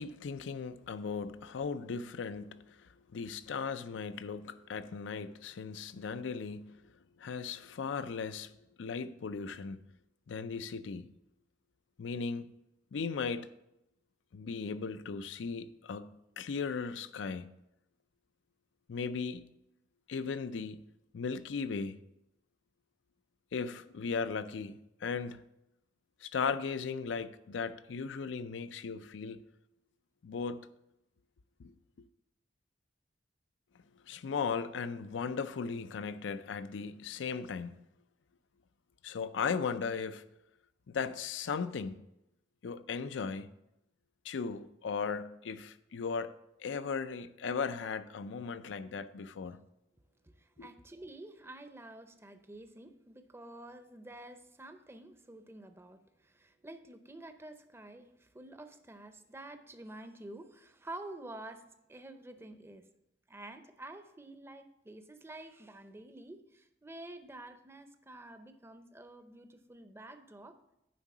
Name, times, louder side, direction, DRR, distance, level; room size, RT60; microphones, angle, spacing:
voice 1, 0.0-6.8 7.2-8.5 8.8-9.9 10.3-11.1 12.0-12.5 12.9-13.5 14.3-17.5 18.9-19.5 20.1-20.8 21.1-22.0 23.5-25.4 26.2-29.4 30.2-30.7 31.6-31.7 34.1-37.8 39.0-40.2 40.9-42.0 42.6-43.5 44.2-46.3 46.6-49.6 50.6-50.7, left 5 dB, 90° left, 0.4 m, -37 dB
voice 2, 50.2-62.9 63.3-70.6, right 1 dB, 15° right, 0.5 m, -49 dB
9.4 x 3.7 x 6.0 m
head